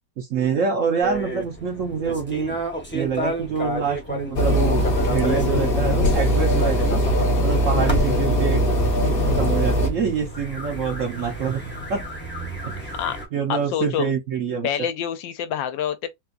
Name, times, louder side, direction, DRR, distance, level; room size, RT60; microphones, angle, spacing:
voice 1, 0.2-2.6 2.9-7.0 7.4-8.6 9.3-11.6 11.9-12.1 12.6-12.7 13.3-14.9, right 6 dB, 65° right, 0.8 m, -26 dB
sound 1, 1.0-13.3, right 1 dB, 10° left, 0.5 m, -31 dB
sound 2, 4.3-9.9, equal, 45° left, 0.7 m, -20 dB
voice 2, 13.5-14.1 14.6-16.1, left 9 dB, 85° left, 1.3 m, -26 dB
4.2 x 2.3 x 2.4 m
omnidirectional pair, 2.1 m